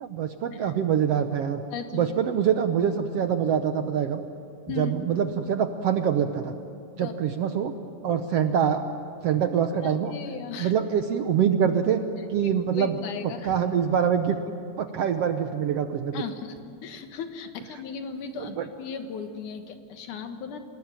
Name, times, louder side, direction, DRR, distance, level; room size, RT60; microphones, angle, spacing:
voice 1, 0.0-1.6 1.9-4.2 4.8-6.5 7.0-7.7 8.0-8.8 9.2-10.1 10.6-12.0 12.3-12.9 13.2-14.4 14.8-16.1 18.4-18.6, right 8 dB, 75° right, 7 dB, 1.4 m, -25 dB
voice 2, 1.7-2.1 4.7-4.9 7.0-7.1 9.8-10.7 12.7-13.6 16.1-16.5 16.8-20.6, left 6 dB, 70° left, 7 dB, 2.8 m, -36 dB
26.0 x 20.0 x 9.0 m, 2.4 s
omnidirectional pair, 3.9 m